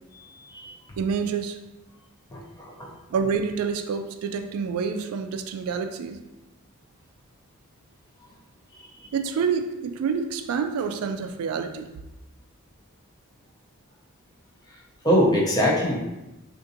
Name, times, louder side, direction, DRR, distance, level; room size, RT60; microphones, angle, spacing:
voice 1, 0.1-0.7 2.3-2.9 8.7-9.1 14.7-14.8 15.0-15.9, equal, 15° left, -4 dB, 0.5 m, -24 dB
voice 2, 1.0-1.6 3.1-6.2 9.1-11.9, right 6 dB, 80° right, 10 dB, 0.3 m, -27 dB
3.7 x 2.5 x 2.6 m, 0.99 s
head